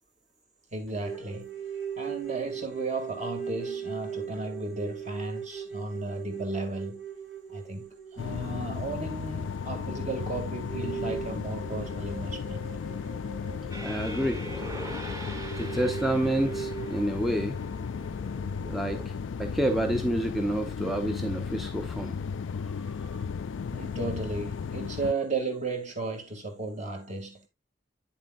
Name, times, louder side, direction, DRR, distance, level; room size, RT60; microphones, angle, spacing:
voice 1, 0.7-1.5 2.0-7.0 7.5-12.7 23.7-27.5, right 2 dB, 40° right, 2.5 m, -34 dB
sound 1, 1.0-9.7 10.0-10.1 10.6-17.0, right 7 dB, 70° right, 4.4 m, -39 dB
sound 2, 8.2-25.1, left 6 dB, 90° left, 0.4 m, -35 dB
sound 3, 13.7-19.1, equal, 15° right, 1.6 m, -42 dB
voice 2, 13.8-14.4 15.1-15.3 15.6-17.6 18.7-19.1 19.4-22.2 22.5-23.2, right 1 dB, ahead, 0.7 m, -29 dB
9.2 x 7.4 x 2.6 m
head